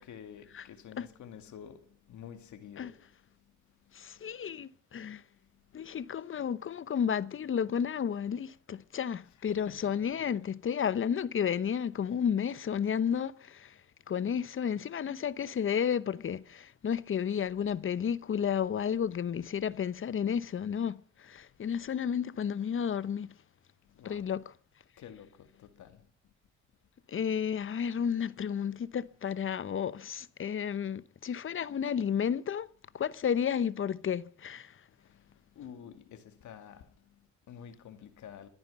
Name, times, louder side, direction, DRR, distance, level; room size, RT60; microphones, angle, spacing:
voice 1, 0.0-3.1 3.8-4.3 5.5-5.6 9.5-9.8 10.1-10.2 23.8-24.3 25.0-26.1 34.9-38.5, left 8 dB, 70° left, 2.3 m, -50 dB
voice 2, 3.9-5.2 5.7-13.8 14.1-23.3 24.0-24.5 27.1-32.7 32.9-34.8, left 8 dB, 45° left, 0.9 m, -32 dB
26.0 x 9.6 x 5.4 m
cardioid pair, 90°, 30 cm